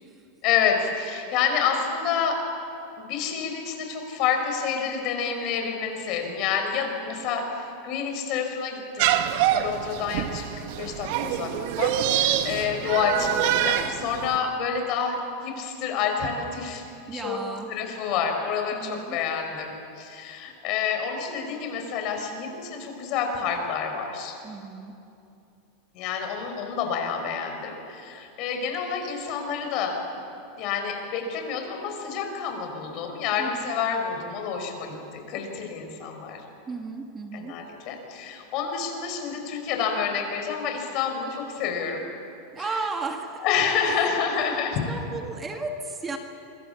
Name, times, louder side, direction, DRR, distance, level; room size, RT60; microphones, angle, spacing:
voice 1, 0.4-2.4 3.0-9.1 9.5-10.4 10.8-11.5 11.8-16.8 17.1-17.4 17.7-24.3 25.9-30.0 30.6-35.0 35.3-36.4 37.3-42.0 42.6-42.7 43.4-44.8, left 6 dB, 50° left, 4 dB, 5.8 m, -28 dB
sound 1, 9.0-14.4, right 11 dB, 65° right, 1.4 m, -25 dB
voice 2, 17.1-17.8 18.7-19.2 24.4-25.0 33.4-33.7 36.7-37.6 42.5-43.5 43.9-44.5 44.9-46.2, right 3 dB, 20° right, 4 dB, 1.9 m, -35 dB
26.0 x 24.0 x 7.1 m, 2.7 s
supercardioid pair, 125°, 0 cm